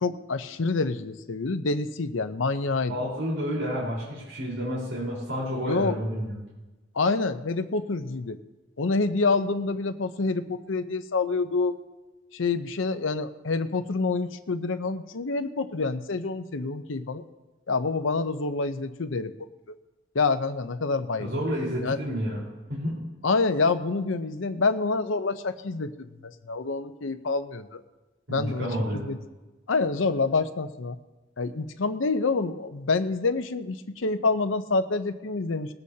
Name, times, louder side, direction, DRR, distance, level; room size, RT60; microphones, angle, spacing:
voice 1, 0.0-2.9 5.6-6.0 7.0-8.4 8.8-11.8 12.3-17.2 17.7-19.3 20.1-21.3 21.8-22.0 23.2-27.8 28.3-28.7 28.9-29.2 29.7-31.0 31.4-35.7, left 3 dB, 80° left, 9 dB, 0.7 m, -27 dB
voice 2, 2.9-6.4 21.2-23.0 28.3-29.1, equal, 80° right, -5 dB, 4.2 m, -30 dB
20.0 x 15.0 x 2.8 m, 1.2 s
head